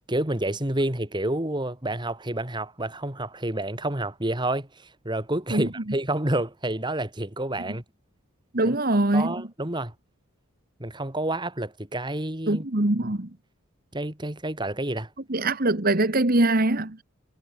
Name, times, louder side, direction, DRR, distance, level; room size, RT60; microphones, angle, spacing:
voice 1, 0.0-7.8 8.6-8.8 9.1-9.9 10.8-12.7 13.9-15.1, right 1 dB, 20° right, 2.2 m, -29 dB
voice 2, 8.5-9.3 12.5-13.3 15.3-17.0, right 2 dB, 45° right, 1.7 m, -22 dB
head